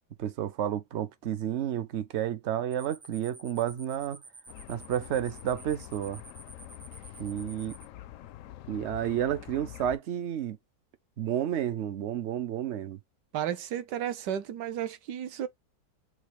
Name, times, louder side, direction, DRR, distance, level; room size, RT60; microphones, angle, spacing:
voice 1, 0.2-4.2 4.7-6.2 7.2-7.7 8.7-10.6 11.2-13.0, right 10 dB, 65° right, 0.7 m, -31 dB
sound 1, 2.7-7.9, right 2 dB, 15° right, 0.5 m, -50 dB
sound 2, 4.5-10.0, left 14 dB, 75° left, 0.7 m, -46 dB
voice 2, 13.3-15.5, right 10 dB, 80° right, 1.4 m, -33 dB
6.4 x 2.3 x 3.1 m
omnidirectional pair, 1.9 m